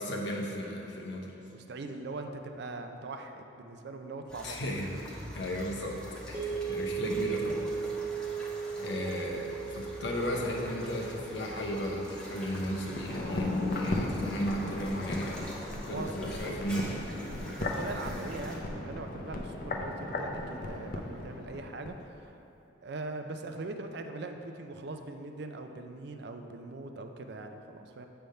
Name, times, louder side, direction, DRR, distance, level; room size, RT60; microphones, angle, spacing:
voice 1, 0.0-1.3 4.4-6.0 6.3-7.6 8.8-15.4 15.9-17.1, equal, 70° left, -1 dB, 0.8 m, -35 dB
voice 2, 1.5-4.6 15.9-16.2 17.3-22.4 22.8-28.1, right 2 dB, 60° right, 6 dB, 0.4 m, -41 dB
sound 1, 4.3-18.6, equal, 5° left, 0.8 m, -45 dB
sound 2, 6.3-14.6, right 6 dB, 15° right, 1.1 m, -38 dB
sound 3, 12.9-22.0 22.2-22.3, left 2 dB, 50° left, 0.5 m, -36 dB
7.7 x 3.4 x 5.4 m, 2.9 s
head